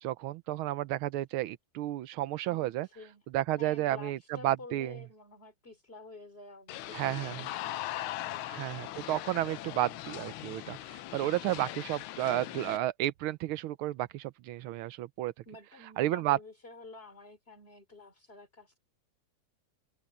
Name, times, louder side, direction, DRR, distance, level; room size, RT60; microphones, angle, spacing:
voice 1, 0.0-2.9 3.3-4.2 4.4-5.0 6.9-7.5 8.5-15.3 16.0-16.4, right 14 dB, 85° right, 1.6 m, -32 dB
voice 2, 2.5-3.2 3.6-9.0 15.5-18.8, left 3 dB, 25° left, 3.6 m, -51 dB
sound 1, 6.7-12.8, left 15 dB, 85° left, 1.5 m, -40 dB
omnidirectional pair, 2.3 m